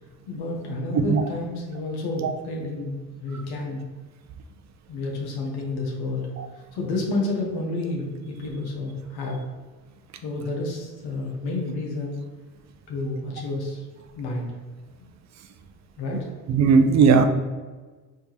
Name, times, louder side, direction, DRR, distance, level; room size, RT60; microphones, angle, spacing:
voice 1, 0.3-3.8 4.9-6.3 6.5-9.5 10.2-12.2 12.9-13.8 14.1-14.5 16.0-16.3, left 2 dB, 70° left, -1 dB, 0.9 m, -30 dB
voice 2, 16.5-17.2, right 5 dB, 45° right, 8 dB, 0.5 m, -17 dB
3.5 x 2.8 x 2.9 m, 1.3 s
supercardioid pair, 60°, 40 cm